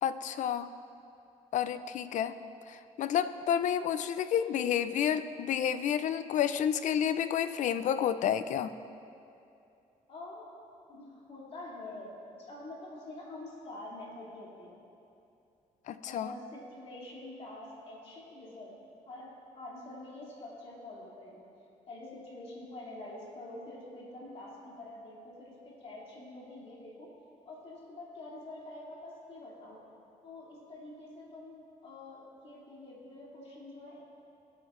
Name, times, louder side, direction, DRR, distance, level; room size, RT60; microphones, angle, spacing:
voice 1, 0.0-0.7 1.5-2.3 2.7-8.7 15.9-16.3, left 9 dB, 60° left, 12 dB, 0.4 m, -30 dB
voice 2, 10.1-10.5 10.9-12.1 12.4-14.8 16.0-18.7 19.1-21.5 21.9-25.5 25.8-27.1 27.4-29.8 30.2-34.0, left 2 dB, 45° left, -5 dB, 2.7 m, -46 dB
19.0 x 8.6 x 2.5 m, 2.6 s
cardioid pair, 150°, 14 cm